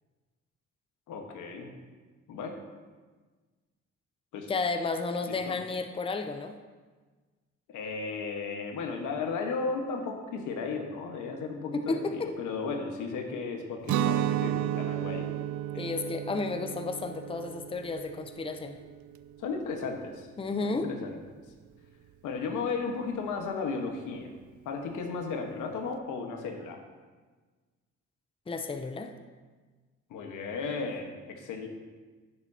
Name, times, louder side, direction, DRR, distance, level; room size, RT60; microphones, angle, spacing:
voice 1, 1.1-1.7 2.3-2.6 4.3-4.5 5.2-5.6 7.7-15.4 19.4-20.3 20.6-21.2 22.2-24.3 24.6-26.8 30.1-31.7, left 4 dB, 85° left, 3 dB, 1.4 m, -35 dB
voice 2, 4.5-6.5 11.7-12.3 15.8-18.8 20.4-20.9 28.5-29.1, left 3 dB, 20° left, 7 dB, 0.7 m, -32 dB
Guitar, 13.8-19.7, right 11 dB, 70° right, 0.5 m, -33 dB
16.5 x 7.0 x 2.9 m, 1.4 s
cardioid pair, 90°, 30 cm